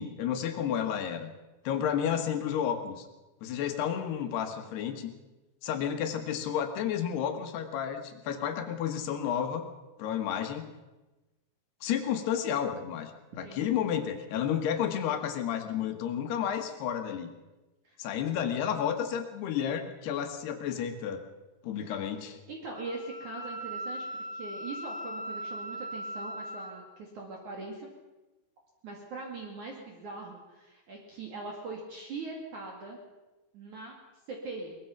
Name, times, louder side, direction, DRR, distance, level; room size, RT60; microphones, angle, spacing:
voice 1, 0.0-1.3 1.7-3.1 3.4-5.1 5.6-9.7 10.0-10.7 11.8-13.1 13.4-17.3 18.0-21.2 21.6-22.4, left 9 dB, 70° left, 6 dB, 3.4 m, -31 dB
voice 2, 22.5-27.9 28.8-33.0 33.5-34.0 34.3-34.8, right 3 dB, 50° right, 0 dB, 3.2 m, -41 dB
Wind instrument woodwind instrument, 22.7-26.8, equal, 20° right, 4.0 m, -39 dB
22.5 x 20.5 x 5.8 m, 1.1 s
omnidirectional pair, 5.2 m